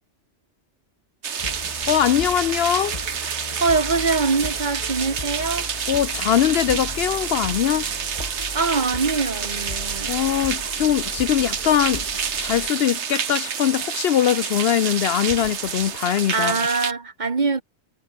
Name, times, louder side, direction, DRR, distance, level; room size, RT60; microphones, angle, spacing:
sound 1, 1.2-16.9, right 7 dB, 70° right, 1.5 m, -29 dB
sound 2, 1.4-13.2, left 3 dB, 30° left, 1.8 m, -37 dB
voice 1, 1.9-3.0 5.9-7.9 10.1-12.0 12.4-16.6, left 10 dB, 65° left, 0.8 m, -21 dB
voice 2, 3.4-5.7 6.7-6.8 8.5-10.2 16.3-17.6, right 4 dB, 40° right, 1.4 m, -23 dB
omnidirectional pair, 1.2 m